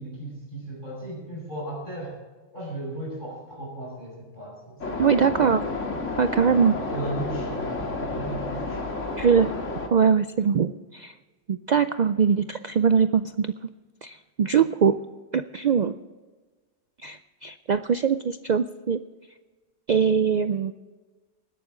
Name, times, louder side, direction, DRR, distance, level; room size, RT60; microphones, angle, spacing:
voice 1, 0.0-2.2 2.5-5.1 6.9-8.9, right 1 dB, 40° left, -4 dB, 5.9 m, -36 dB
sound 1, 4.8-9.9, left 3 dB, 75° left, 2.1 m, -31 dB
voice 2, 5.0-5.7 6.2-6.8 9.2-9.5 9.9-11.1 11.5-13.5 14.0-14.9 15.3-15.9 17.0-19.0 19.9-20.7, right 6 dB, 65° right, 11 dB, 0.4 m, -22 dB
20.0 x 12.0 x 3.8 m, 1.3 s
omnidirectional pair, 1.3 m